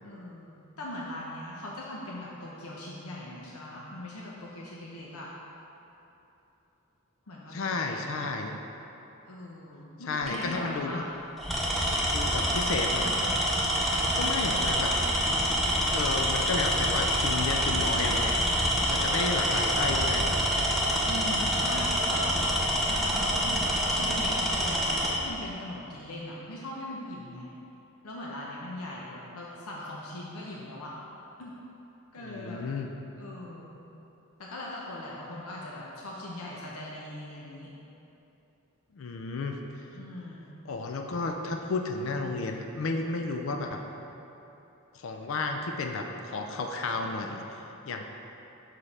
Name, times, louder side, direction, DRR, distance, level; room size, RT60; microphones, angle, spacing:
voice 1, 0.0-5.3 7.3-8.2 9.2-11.1 21.0-27.5 28.0-30.9 31.4-31.5 32.1-32.6 33.2-33.7 34.4-37.7 39.9-40.5 44.9-45.0, left 1 dB, 85° left, -4 dB, 0.7 m, -40 dB
voice 2, 7.5-8.6 10.1-11.0 12.1-13.4 14.2-14.9 15.9-18.3 18.9-20.3 32.2-32.9 38.9-39.6 40.6-43.8 44.9-48.0, left 3 dB, 65° left, 4 dB, 0.4 m, -32 dB
Tools, 10.2-10.5 11.4-25.2, equal, ahead, 0.6 m, -26 dB
6.3 x 5.0 x 4.2 m, 3.0 s
head